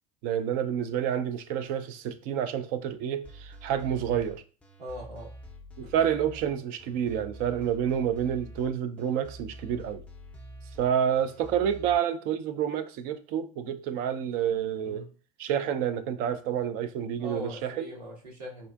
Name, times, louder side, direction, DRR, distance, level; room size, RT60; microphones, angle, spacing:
voice 1, 0.2-4.4 5.8-10.0 10.8-15.1 15.4-17.9, right 9 dB, 45° right, 0.4 m, -29 dB
sound 1, 3.2-12.0, right 1 dB, 5° left, 0.5 m, -46 dB
voice 2, 4.8-5.3 14.8-15.1 17.2-18.7, equal, 80° right, 1.1 m, -41 dB
3.6 x 2.4 x 2.3 m
figure-of-eight pair, 80°, 19 cm